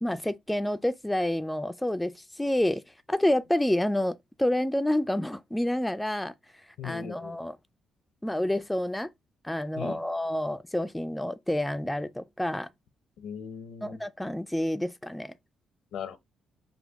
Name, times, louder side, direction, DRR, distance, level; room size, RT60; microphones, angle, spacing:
voice 1, 0.0-2.8 3.1-6.3 6.8-7.6 8.2-9.1 9.4-12.7 13.8-15.3, left 1 dB, 5° left, 0.3 m, -28 dB
voice 2, 6.8-7.4 9.8-10.0 13.2-14.0 15.9-16.2, left 8 dB, 80° left, 0.7 m, -39 dB
5.2 x 2.2 x 3.4 m
cardioid pair, 90°, 0 cm